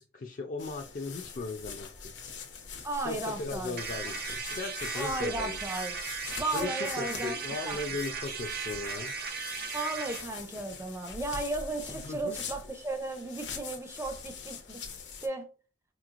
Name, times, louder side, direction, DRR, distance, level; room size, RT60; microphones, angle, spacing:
voice 1, 0.0-2.1 3.0-4.1 4.5-5.6 6.5-9.1 12.0-12.4, left 3 dB, 50° left, 0.4 m, -37 dB
sound 1, 0.6-15.3, left 5 dB, 90° left, 0.8 m, -43 dB
voice 2, 2.8-4.1 4.9-6.0 6.4-7.4 7.6-7.8 9.7-14.8 15.2-15.5, right 2 dB, 15° right, 0.5 m, -35 dB
sound 2, 3.8-10.3, right 5 dB, 60° right, 0.6 m, -37 dB
4.1 x 3.0 x 2.4 m
head